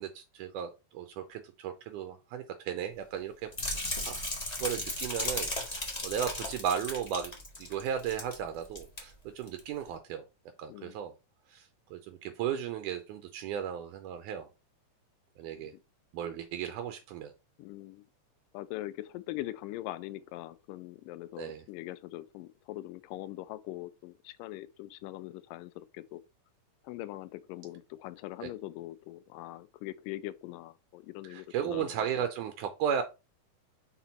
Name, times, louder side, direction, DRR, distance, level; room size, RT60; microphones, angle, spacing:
voice 1, 0.0-7.3 7.6-10.2 10.6-11.1 11.5-14.5 15.4-15.7 16.1-17.3 21.4-21.6 28.4-28.5 31.2-33.0, right 8 dB, 80° right, 2.1 m, -35 dB
sound 1, 3.5-8.4 8.6-9.0 9.5-9.6, left 1 dB, 70° left, 0.3 m, -35 dB
voice 2, 17.6-18.0 18.5-26.2 26.8-32.0, left 16 dB, 85° left, 2.2 m, -42 dB
6.0 x 4.1 x 4.0 m
omnidirectional pair, 3.9 m